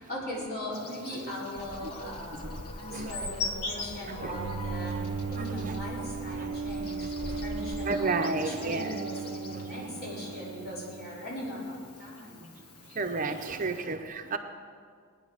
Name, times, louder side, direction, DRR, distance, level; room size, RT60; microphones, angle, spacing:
voice 1, 0.0-12.5, equal, 45° left, -6 dB, 5.2 m, -39 dB
Insect, 0.7-13.8, left 3 dB, 85° left, 1.4 m, -44 dB
sound 1, 1.6-7.9, left 1 dB, 25° left, 0.5 m, -42 dB
voice 2, 2.3-2.6 2.9-3.1 4.2-4.4 5.6-5.8 6.4-6.6 7.0-7.4 7.9-9.0 12.9-14.4, right 3 dB, 35° right, 6 dB, 0.7 m, -32 dB
Bowed string instrument, 4.3-11.6, right 5 dB, 80° right, 0.4 m, -37 dB
19.5 x 10.0 x 6.6 m, 2.1 s
head